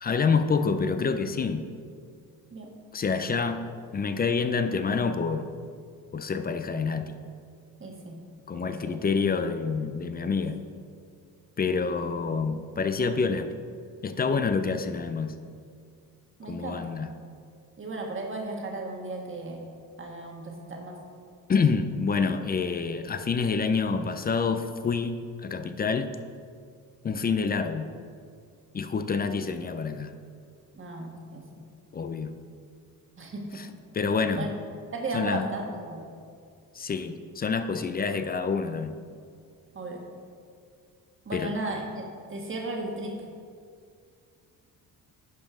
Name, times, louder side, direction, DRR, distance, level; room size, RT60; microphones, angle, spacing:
voice 1, 0.0-1.6 2.9-3.6 3.9-5.5 6.1-7.2 8.5-10.6 11.6-13.5 14.0-15.3 16.5-17.1 21.5-26.1 27.0-27.9 28.7-30.1 31.9-32.3 33.5-33.7 33.9-34.5 35.1-35.5 36.7-38.9 41.3-41.5, left 5 dB, 25° left, 9 dB, 0.4 m, -27 dB
voice 2, 2.5-2.8 7.8-8.2 8.5-9.0 16.4-17.0 17.8-19.7 20.0-21.0 30.7-31.5 33.2-33.6 34.4-34.5 34.9-36.1 39.7-40.0 41.2-43.2, right 2 dB, 30° right, 1 dB, 1.4 m, -35 dB
11.0 x 5.1 x 3.6 m, 2.2 s
cardioid pair, 100°, 38 cm